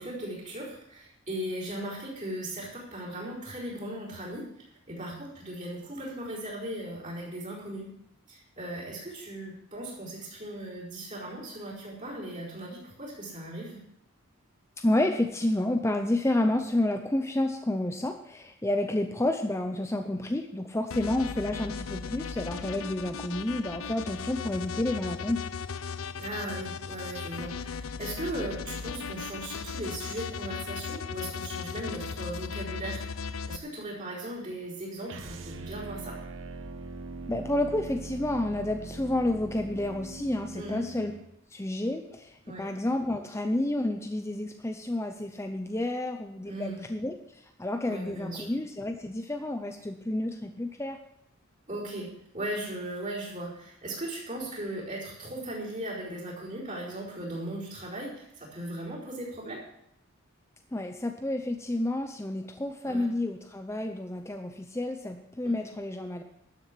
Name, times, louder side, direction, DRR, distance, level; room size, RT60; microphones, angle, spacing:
voice 1, 0.0-7.9 8.3-13.8 26.2-36.2 40.5-40.9 42.4-42.7 46.4-46.9 47.9-48.5 51.7-59.6 62.8-63.1 65.4-65.6, right 1 dB, 35° right, -7 dB, 4.6 m, -38 dB
voice 2, 14.8-25.5 37.3-41.1 41.5-51.0 60.7-66.2, left 1 dB, 15° left, 5 dB, 0.6 m, -30 dB
sound 1, 20.9-33.6, left 6 dB, 80° left, 0.6 m, -37 dB
sound 2, 35.1-41.2, right 3 dB, 65° right, 1.2 m, -41 dB
12.5 x 7.6 x 7.5 m, 0.79 s
head